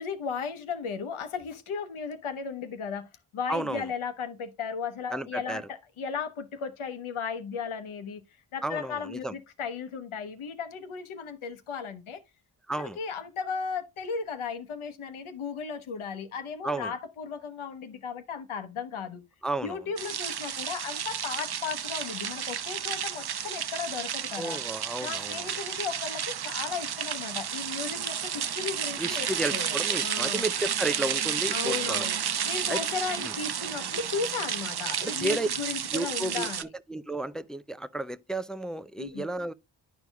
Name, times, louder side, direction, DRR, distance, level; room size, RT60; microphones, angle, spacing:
voice 1, 0.0-8.2 8.5-12.2 12.8-19.2 19.6-24.6 25.0-29.7 30.0-30.5 31.5-32.2 32.4-36.6 39.0-39.2, left 6 dB, 85° left, 1.1 m, -35 dB
voice 2, 3.5-3.8 5.1-5.6 8.6-9.4 12.7-13.0 16.6-16.9 19.4-19.8 24.4-25.5 29.0-32.1 32.7-32.8 33.2-33.3 35.0-35.5 35.9-39.5, right 2 dB, ahead, 0.4 m, -32 dB
sound 1, 20.0-36.6, right 8 dB, 55° right, 0.7 m, -32 dB
11.0 x 4.6 x 2.3 m
cardioid pair, 50°, 48 cm